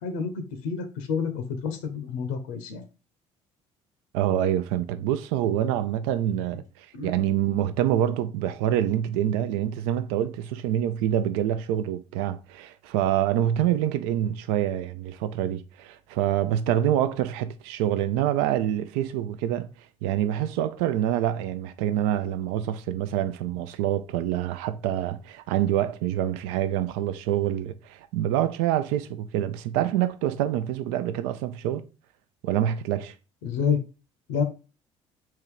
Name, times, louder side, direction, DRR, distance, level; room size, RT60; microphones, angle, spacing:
voice 1, 0.0-2.8 6.9-7.2 33.4-33.8 34.3-34.4, left 6 dB, 70° left, 0.7 m, -29 dB
voice 2, 4.1-19.7 20.0-31.8 32.4-33.1, right 11 dB, 65° right, 0.5 m, -26 dB
3.7 x 2.9 x 4.6 m
figure-of-eight pair, 55°, 16 cm